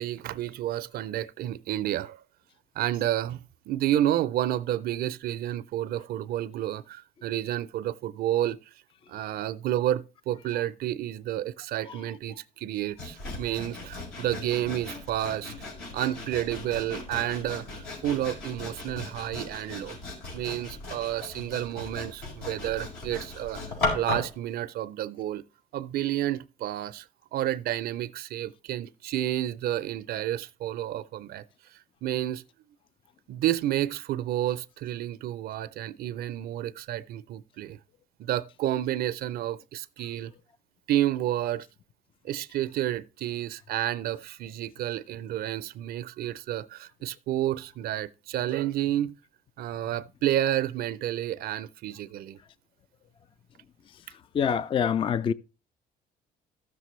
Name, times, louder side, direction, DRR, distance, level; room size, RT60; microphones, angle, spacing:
voice 1, 0.0-2.2 2.8-8.6 9.1-15.5 15.9-20.0 20.3-23.6 23.9-25.4 25.7-27.1 27.3-31.4 32.0-32.4 33.3-37.8 38.2-40.3 40.9-41.7 42.2-49.1 49.6-52.4, right 12 dB, 65° right, 0.5 m, -30 dB
Sawing, 13.0-24.4, left 2 dB, 80° left, 4.8 m, -37 dB
voice 2, 54.3-55.3, left 7 dB, 30° left, 0.4 m, -25 dB
14.0 x 6.7 x 3.1 m
cardioid pair, 110°, 17 cm